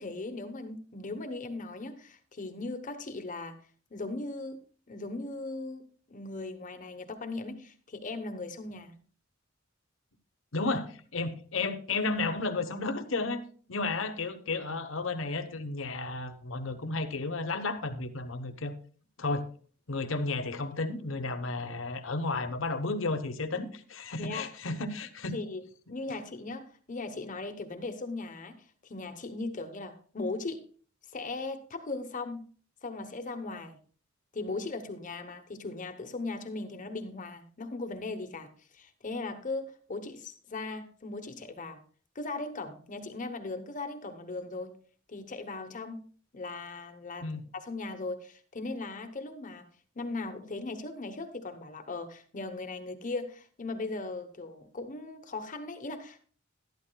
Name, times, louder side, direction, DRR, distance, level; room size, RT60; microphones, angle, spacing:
voice 1, 0.0-3.6 3.9-5.8 6.1-9.0 24.2-24.4 25.3-25.6 25.9-28.6 28.8-30.6 31.1-32.4 32.8-33.8 34.3-41.8 42.1-44.8 45.1-46.0 46.3-49.7 49.9-56.2, left 3 dB, 40° left, 6 dB, 0.9 m, -38 dB
voice 2, 10.5-13.4 13.7-18.7 19.2-19.5 19.9-25.4 47.2-47.4, left 3 dB, 80° left, 8 dB, 1.0 m, -33 dB
12.0 x 12.0 x 2.3 m, 0.43 s
head